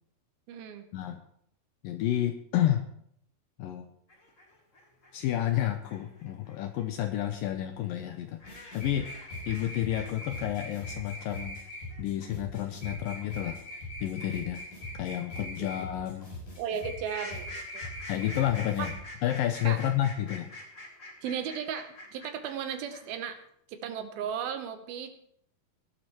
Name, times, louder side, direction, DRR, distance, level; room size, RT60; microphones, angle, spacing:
voice 1, 0.5-0.9 15.6-15.7 16.6-17.9 18.8-18.9 19.6-19.8 21.2-23.4 23.7-25.1, right 8 dB, 75° right, 8 dB, 2.6 m, -35 dB
voice 2, 1.8-2.8 3.6-3.9 5.1-11.6 12.0-13.6 14.0-14.6 14.9-16.3 18.1-18.9 19.2-20.5, left 12 dB, 80° left, 7 dB, 2.1 m, -30 dB
sound 1, 4.1-10.1 10.3-23.3, left 2 dB, 30° left, 1.4 m, -47 dB
sound 2, 8.4-19.0, left 1 dB, 50° left, 8.3 m, -41 dB
19.5 x 12.0 x 3.0 m, 0.69 s
omnidirectional pair, 4.6 m